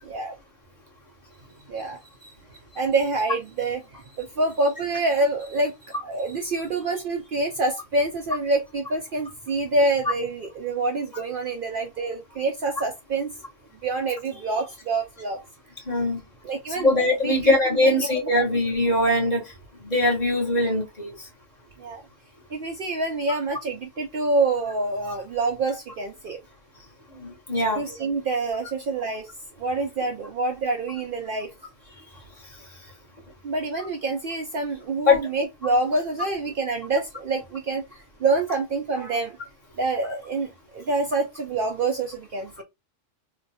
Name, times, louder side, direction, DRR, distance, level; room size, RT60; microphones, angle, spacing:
voice 1, 0.0-0.4 1.7-2.3 2.7-13.3 13.8-15.4 16.4-16.9 17.2-17.5 17.8-17.9 21.8-22.0 22.5-26.4 27.7-29.3 29.6-31.5 33.4-39.4 39.8-42.6, right 3 dB, 55° right, 0.6 m, -26 dB
voice 2, 15.9-16.2 16.8-19.4 19.8-21.1 27.1-27.8 35.1-35.2, left 2 dB, 35° left, 1.3 m, -21 dB
3.0 x 2.2 x 4.0 m
omnidirectional pair, 1.2 m